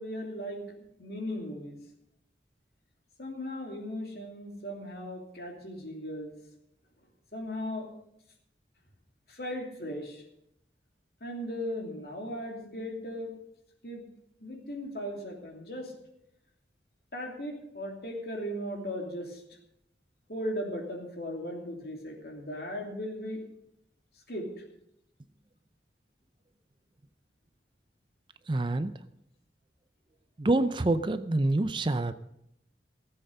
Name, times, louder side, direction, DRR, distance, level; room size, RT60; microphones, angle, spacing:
voice 1, 0.0-1.8 3.2-6.3 7.3-7.9 9.3-10.2 11.2-13.3 13.8-14.0 14.4-15.9 17.1-19.4 20.3-23.4 24.3-24.6, equal, 60° left, 1 dB, 2.9 m, -37 dB
voice 2, 28.5-28.9 30.4-32.1, right 2 dB, 25° right, 12 dB, 0.5 m, -26 dB
16.5 x 7.9 x 6.7 m, 0.78 s
head